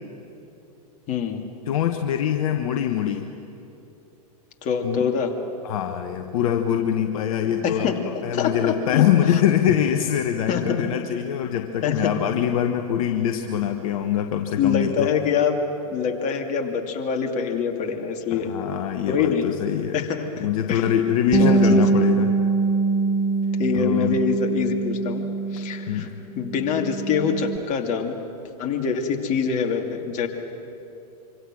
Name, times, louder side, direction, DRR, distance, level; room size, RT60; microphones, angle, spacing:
voice 1, 1.1-1.4 4.6-5.3 7.6-7.9 8.3-9.4 10.5-10.6 11.8-12.1 14.6-15.5 15.9-18.5 19.1-19.5 19.9-20.8 21.4-21.8 23.6-25.2 25.5-26.1 26.4-28.2 28.6-30.3, left 6 dB, 40° left, 3 dB, 2.7 m, -25 dB
voice 2, 1.7-3.3 4.8-5.0 5.6-15.1 18.3-20.0 20.4-22.4 23.7-24.2 25.9-26.1, left 10 dB, 60° left, 5 dB, 1.3 m, -23 dB
Bass guitar, 21.3-26.0 26.4-27.6, right 4 dB, 15° right, 0.6 m, -23 dB
25.5 x 25.0 x 6.3 m, 2.9 s
hypercardioid pair, 105°, 20 cm